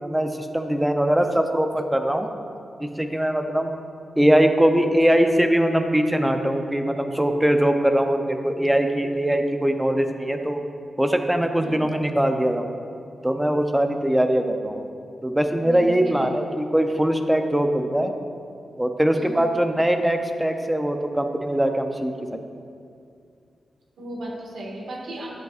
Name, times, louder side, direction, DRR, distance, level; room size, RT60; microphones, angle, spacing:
voice 1, 0.0-2.3 2.8-3.8 4.2-10.6 11.0-12.7 13.2-14.8 15.2-18.1 18.8-22.1, right 1 dB, 5° right, 6 dB, 0.5 m, -21 dB
voice 2, 15.6-16.3 19.1-19.4 24.0-25.3, right 1 dB, 90° right, -2 dB, 1.6 m, -35 dB
10.5 x 7.9 x 2.4 m, 2.4 s
wide cardioid pair, 150°, 0 cm